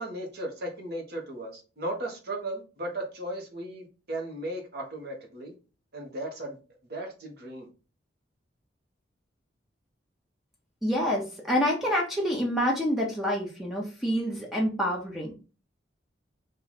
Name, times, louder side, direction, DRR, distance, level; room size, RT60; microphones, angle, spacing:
voice 1, 0.0-5.5 5.9-6.6 6.9-7.7, right 1 dB, 55° right, 1.1 m, -36 dB
voice 2, 10.8-15.3, equal, ahead, 0.7 m, -27 dB
3.1 x 2.5 x 4.0 m
head